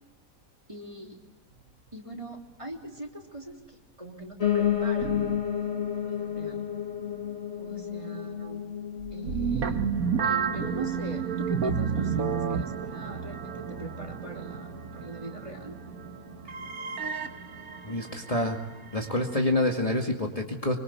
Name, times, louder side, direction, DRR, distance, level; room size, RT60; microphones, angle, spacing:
voice 1, 0.7-1.2 1.9-5.1 6.0-6.6 7.6-8.6 9.1-9.8 10.5-15.7, right 1 dB, 20° right, 1 dB, 3.5 m, -42 dB
Piano, 4.4-13.5 13.9-15.1 15.3-15.4 15.7-15.8 16.0-16.1 16.7-16.8, left 9 dB, 45° left, 1.9 m, -32 dB
sound 1, 4.5-6.1 6.4-6.6 7.1-7.3 9.0-19.7, right 7 dB, 80° right, 1.7 m, -32 dB
voice 2, 17.8-18.6 18.9-20.8, left 1 dB, 25° left, 1 dB, 2.3 m, -27 dB
25.0 x 25.0 x 8.2 m, 1.1 s
omnidirectional pair, 1.5 m